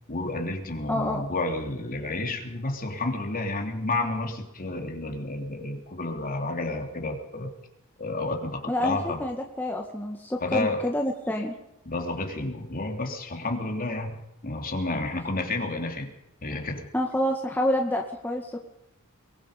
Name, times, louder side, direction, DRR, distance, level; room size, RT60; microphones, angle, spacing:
voice 1, 0.1-7.5 8.0-9.2 10.4-10.9 11.9-16.1 16.4-16.9, left 2 dB, 40° left, 3 dB, 3.4 m, -30 dB
voice 2, 0.9-1.2 8.7-11.6 16.9-18.6, left 1 dB, 10° left, 1 dB, 1.9 m, -28 dB
23.0 x 22.5 x 5.3 m, 0.85 s
head